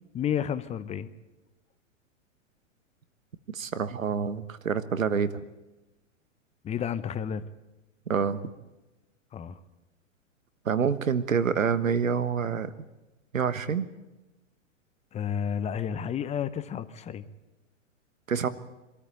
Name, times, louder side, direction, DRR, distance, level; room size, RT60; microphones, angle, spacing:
voice 1, 0.1-1.1 6.6-7.4 9.3-9.6 15.1-17.2, left 8 dB, 15° left, 15 dB, 0.8 m, -31 dB
voice 2, 3.5-5.3 8.1-8.4 10.6-12.7 13.3-13.9 18.3-18.5, right 6 dB, 85° right, 13 dB, 1.3 m, -27 dB
23.5 x 13.5 x 9.0 m, 1.1 s
hypercardioid pair, 110°, 39 cm